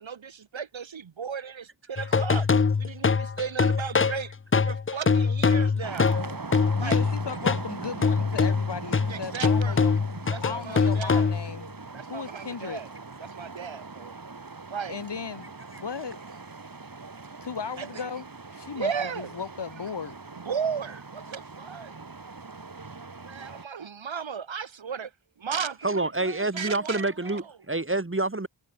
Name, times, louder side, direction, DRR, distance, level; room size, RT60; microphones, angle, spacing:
voice 1, 0.0-2.5 2.8-4.3 4.6-6.1 6.8-7.0 9.1-9.8 10.3-11.3 11.9-12.9 13.2-14.1 14.7-15.0 17.8-18.1 18.7-19.3 20.4-21.9 23.3-25.1 25.4-27.5, right 6 dB, 85° right, 1.1 m, -35 dB
sound 1, 2.0-7.7 8.0-11.6, left 5 dB, 30° left, 0.5 m, -23 dB
sound 2, 5.8-23.6, right 4 dB, 50° right, 1.9 m, -41 dB
voice 2, 6.6-9.9 10.4-11.7 12.1-12.8 14.9-15.5 15.8-16.2 17.4-18.3 18.5-20.2, left 6 dB, 65° left, 1.1 m, -36 dB
voice 3, 25.8-28.5, right 2 dB, 25° right, 1.8 m, -27 dB
wide cardioid pair, 55°, 45 cm